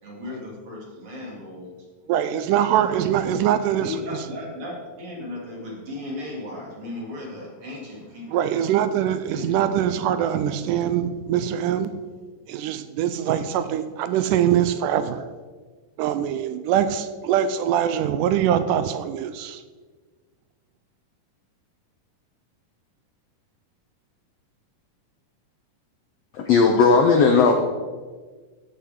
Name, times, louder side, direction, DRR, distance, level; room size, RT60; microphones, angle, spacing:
voice 1, 0.0-1.7 2.7-8.4 9.1-9.6 10.0-10.4, left 2 dB, 40° right, -4 dB, 3.4 m, -36 dB
voice 2, 2.1-4.2 8.3-11.9 12.5-15.3 16.0-19.6, right 10 dB, 80° right, 11 dB, 2.0 m, -23 dB
voice 3, 26.3-27.5, left 4 dB, 85° left, 4 dB, 1.4 m, -16 dB
14.0 x 8.4 x 3.7 m, 1.4 s
omnidirectional pair, 3.9 m